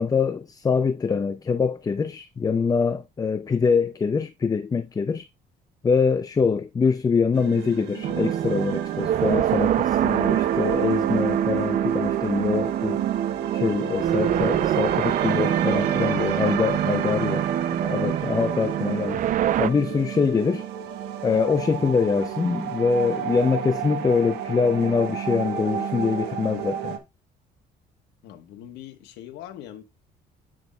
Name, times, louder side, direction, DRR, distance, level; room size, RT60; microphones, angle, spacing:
voice 1, 0.0-5.3 5.8-13.0 13.5-17.5 17.8-19.2 19.6-20.6 21.2-27.0, left 5 dB, 20° left, 0.5 m, -24 dB
sound 1, 7.3-27.0, right 9 dB, 80° right, 1.3 m, -32 dB
sound 2, 8.0-19.7, right 10 dB, 50° right, 0.5 m, -25 dB
voice 2, 28.2-29.8, left 11 dB, 90° left, 1.3 m, -41 dB
8.8 x 6.2 x 2.3 m
cardioid pair, 110°, 17 cm